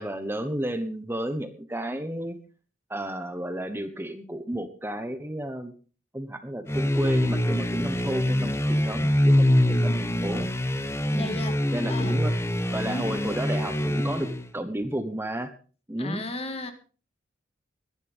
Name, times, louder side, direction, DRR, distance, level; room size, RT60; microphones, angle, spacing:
voice 1, 0.0-2.4 2.9-5.7 6.1-8.5 8.8-9.6 9.8-10.5 11.1-11.4 11.7-12.4 12.7-15.5 15.9-16.2, right 1 dB, 10° right, 1.1 m, -32 dB
sound 1, 6.7-14.5, left 1 dB, 15° left, 0.9 m, -24 dB
voice 2, 9.6-10.2 11.2-12.2 12.9-13.2 16.0-16.7, left 1 dB, 30° left, 1.9 m, -36 dB
22.0 x 10.5 x 3.6 m
head